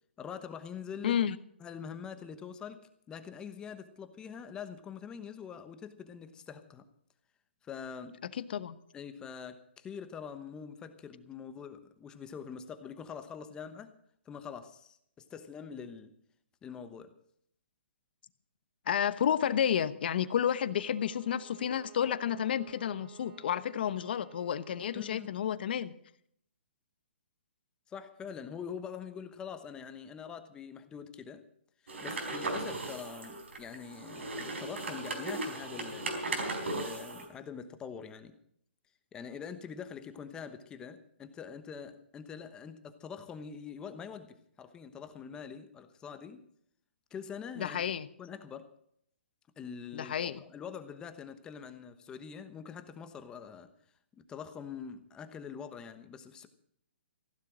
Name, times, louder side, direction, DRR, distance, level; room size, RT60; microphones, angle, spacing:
voice 1, 0.2-1.2 1.6-2.8 3.1-6.8 7.6-8.2 8.9-13.9 14.3-16.1 16.6-17.1 24.9-25.3 27.9-31.4 31.8-38.3 39.1-46.4 47.1-47.8 48.2-48.7 49.6-53.7 54.2-56.5, left 7 dB, 15° left, 10 dB, 1.0 m, -44 dB
voice 2, 1.0-1.4 8.4-8.8 18.9-25.9 47.6-48.1 49.9-50.4, left 9 dB, 55° left, 14 dB, 1.0 m, -31 dB
Bowed string instrument, 20.4-25.4, right 8 dB, 40° right, 3.0 m, -56 dB
sound 1, 31.9-37.2, right 2 dB, 80° right, 4.4 m, -37 dB
15.5 x 11.5 x 6.1 m, 0.68 s
hypercardioid pair, 155°, 6 cm